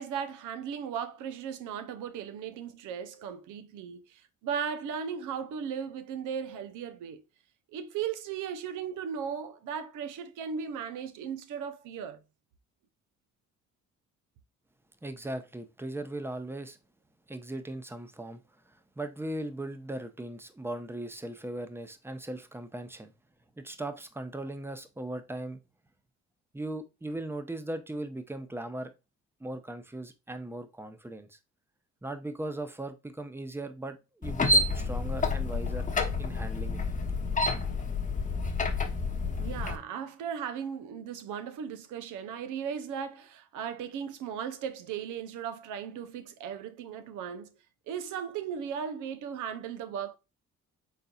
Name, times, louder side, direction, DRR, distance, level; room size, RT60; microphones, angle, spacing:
voice 1, 0.0-7.2 7.7-12.2 39.2-47.5 47.9-50.2, right 7 dB, 90° right, 0.7 m, -37 dB
voice 2, 15.0-16.8 17.3-23.1 23.6-25.6 26.5-28.9 29.4-31.4 32.0-35.9 36.2-36.9, right 1 dB, 10° right, 0.6 m, -38 dB
sound 1, 34.2-39.8, left 2 dB, 25° left, 0.9 m, -29 dB
4.2 x 3.8 x 2.2 m
cardioid pair, 90°, 30 cm